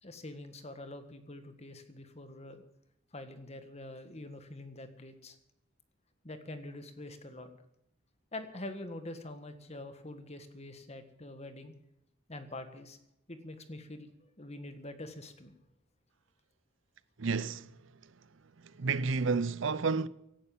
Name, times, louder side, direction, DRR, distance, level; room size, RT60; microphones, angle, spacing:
voice 1, 0.0-2.6 3.1-5.4 6.2-7.5 8.3-11.7 12.3-13.0 13.3-15.5, left 1 dB, 30° left, 1.7 m, -45 dB
voice 2, 17.2-17.9 18.6-20.1, right 4 dB, 70° right, 0.6 m, -31 dB
17.5 x 11.0 x 7.2 m
head